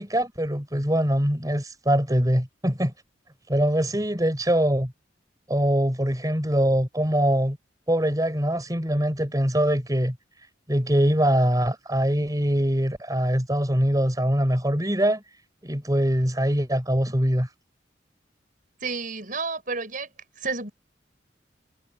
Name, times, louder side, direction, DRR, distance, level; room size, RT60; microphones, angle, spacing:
voice 1, 0.0-2.9 3.5-4.9 5.5-7.6 7.9-10.2 10.7-15.2 15.6-17.5, equal, 20° right, 5.1 m, -23 dB
voice 2, 18.8-20.1 20.4-20.7, right 4 dB, 50° right, 7.2 m, -30 dB
head